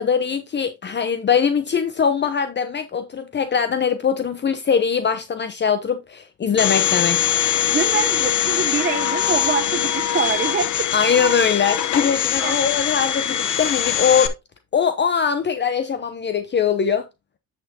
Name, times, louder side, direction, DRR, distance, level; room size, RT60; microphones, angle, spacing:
voice 1, 0.0-7.3 10.9-14.3 14.7-17.1, left 6 dB, 35° left, 0.7 m, -21 dB
Domestic sounds home sounds, 6.6-14.3, left 10 dB, 75° left, 1.0 m, -22 dB
voice 2, 7.7-10.7 12.4-12.6, right 6 dB, 35° right, 0.8 m, -24 dB
10.0 x 6.0 x 2.8 m
cardioid pair, 90°, 30 cm